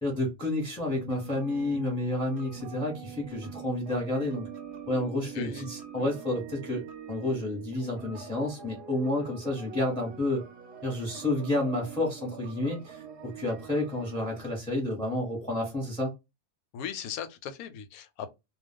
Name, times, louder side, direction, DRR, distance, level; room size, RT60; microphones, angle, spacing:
voice 1, 0.0-4.5 4.9-6.8 7.1-10.4 10.8-13.0 13.3-16.1, left 1 dB, 5° left, 0.8 m, -30 dB
sound 1, 0.9-14.6, right 7 dB, 55° right, 0.8 m, -44 dB
voice 2, 5.3-5.7 16.7-18.3, left 8 dB, 90° left, 1.0 m, -38 dB
2.4 x 2.2 x 3.5 m
omnidirectional pair, 1.5 m